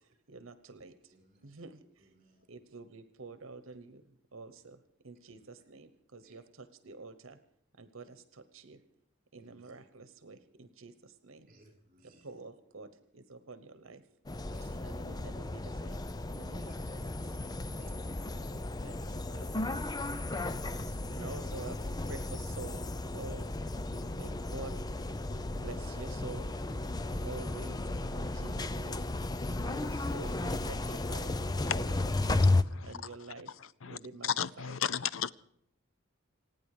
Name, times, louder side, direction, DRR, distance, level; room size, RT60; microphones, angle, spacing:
voice 1, 0.3-1.1 1.4-2.1 2.5-4.0 4.3-4.8 5.0-7.4 7.8-8.8 9.3-11.5 12.2-14.0 14.8-17.4 18.5-19.6 20.8-21.8 22.1-22.9 23.1-23.5 24.1-24.7 25.6-26.6 27.2-27.8 28.1-29.0 29.6-32.5 32.8-33.5 33.8-34.8, right 3 dB, 85° right, 11 dB, 1.1 m, -48 dB
voice 2, 1.1-1.5 2.0-2.5 5.3-5.5 6.2-6.4 9.4-9.7 11.5-12.4 14.5-15.0 16.6-16.8 17.8-18.2 19.0-19.1 20.1-21.0, right 1 dB, 35° right, 4 dB, 5.2 m, -61 dB
sound 1, 14.3-32.6, left 2 dB, 20° left, 0.5 m, -34 dB
voice 3, 33.6-34.0 34.2-35.3, left 8 dB, 75° left, 19 dB, 0.6 m, -34 dB
28.0 x 9.6 x 4.9 m, 0.71 s
head